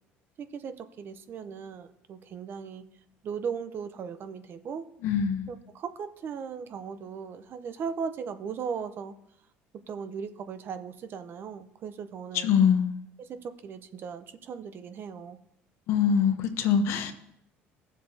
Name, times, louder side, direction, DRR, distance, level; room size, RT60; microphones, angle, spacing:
voice 1, 0.4-2.8 3.2-4.8 5.5-9.1 9.9-12.5 13.2-15.4, right 6 dB, 50° right, 10 dB, 0.8 m, -37 dB
voice 2, 5.0-5.5 12.3-13.0 15.9-17.1, left 7 dB, 70° left, 8 dB, 1.0 m, -24 dB
16.5 x 7.3 x 2.8 m, 0.78 s
supercardioid pair, 100°, 5 cm